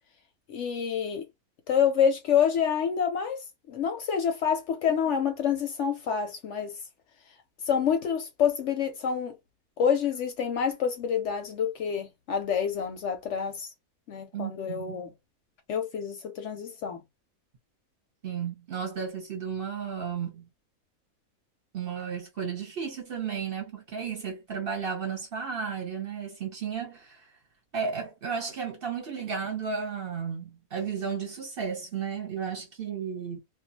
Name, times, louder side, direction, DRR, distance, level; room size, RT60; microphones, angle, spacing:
voice 1, 0.5-1.3 1.7-6.8 7.7-9.3 9.8-13.7 14.1-15.1 15.7-17.0, left 7 dB, 65° left, 0.8 m, -27 dB
voice 2, 14.3-15.1 18.2-20.5 21.7-27.4 27.7-33.4, right 6 dB, 50° right, 0.8 m, -33 dB
2.4 x 2.3 x 2.6 m
omnidirectional pair, 1.5 m